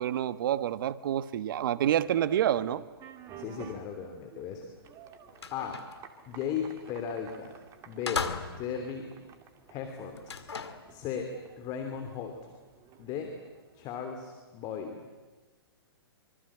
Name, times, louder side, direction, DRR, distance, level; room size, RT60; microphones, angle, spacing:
voice 1, 0.0-2.8, right 11 dB, 55° right, 1.2 m, -28 dB
sound 1, 1.6-14.4, right 7 dB, 25° right, 2.2 m, -52 dB
voice 2, 3.4-4.6 5.5-5.8 6.3-7.5 7.8-8.3 8.6-9.1 9.7-10.4 10.9-12.4 13.0-13.4 13.7-15.0, left 7 dB, 30° left, 3.0 m, -36 dB
sound 2, 4.8-4.9 5.3-6.0 7.3-7.5 8.1-8.8 10.2-10.9, left 5 dB, 85° left, 2.2 m, -36 dB
25.5 x 24.5 x 8.8 m
hypercardioid pair, 135°, 13 cm